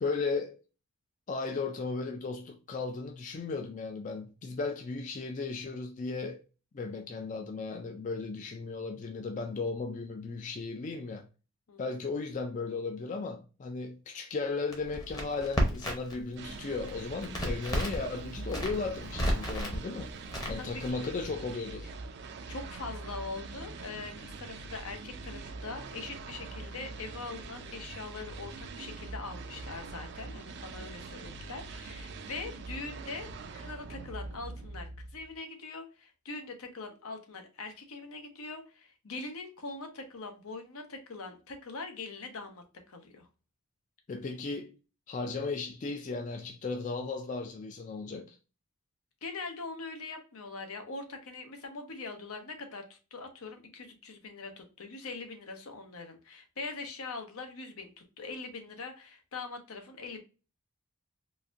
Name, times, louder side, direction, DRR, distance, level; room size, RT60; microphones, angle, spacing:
voice 1, 0.0-0.6 1.3-6.4 6.7-11.2 11.8-20.1 20.5-21.9 44.1-44.8 45.1-48.4, left 4 dB, 35° left, 0.3 m, -35 dB
Crackle, 14.7-16.2 16.5-18.1 18.4-19.8 20.3-20.9, equal, 20° left, 0.7 m, -31 dB
Noise - Bellowing Horns, 16.4-35.4, right 3 dB, 50° right, 0.4 m, -43 dB
voice 2, 22.5-43.3 49.2-60.2, left 3 dB, 80° left, 0.8 m, -42 dB
4.0 x 2.5 x 2.4 m
head